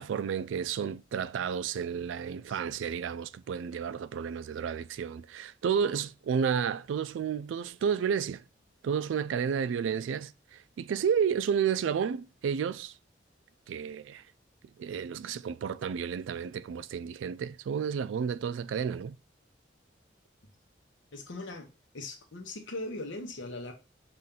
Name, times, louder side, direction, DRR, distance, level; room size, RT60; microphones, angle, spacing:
voice 1, 0.0-8.4 8.8-12.9 13.7-14.2 14.8-19.2, right 7 dB, 90° right, 0.3 m, -31 dB
voice 2, 21.1-23.7, left 2 dB, 90° left, 0.9 m, -40 dB
5.6 x 2.5 x 3.7 m
head